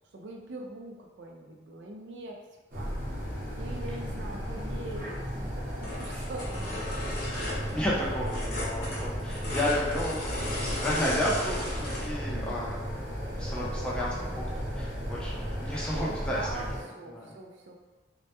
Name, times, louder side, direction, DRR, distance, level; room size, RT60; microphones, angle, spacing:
voice 1, 0.1-2.4 2.7-3.0 3.6-6.9 7.5-7.8 12.3-12.6 15.9-17.7, right 2 dB, 65° right, 1 dB, 0.4 m, -42 dB
sound 1, 2.7-16.8, equal, 45° right, 0.8 m, -35 dB
Shoveling Snow, 4.8-4.9 5.6-5.7 5.8-12.1 12.6-12.7, left 1 dB, 55° left, 0.6 m, -36 dB
voice 2, 7.1-13.0 13.3-16.6 17.1-17.3, equal, 5° left, -6 dB, 0.4 m, -33 dB
2.1 x 2.1 x 2.8 m, 1.2 s
head